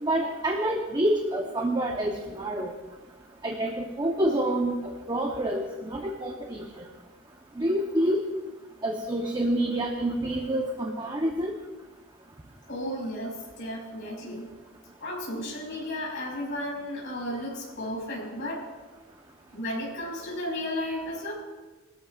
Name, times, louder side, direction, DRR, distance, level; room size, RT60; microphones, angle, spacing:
voice 1, 0.0-2.7 3.4-4.8 5.1-6.8 7.6-8.2 8.8-11.6, right 1 dB, 20° right, 1 dB, 1.0 m, -27 dB
voice 2, 12.7-14.5 15.0-18.6 19.5-21.3, left 1 dB, 55° left, -5 dB, 5.4 m, -34 dB
21.0 x 13.5 x 2.5 m, 1.2 s
head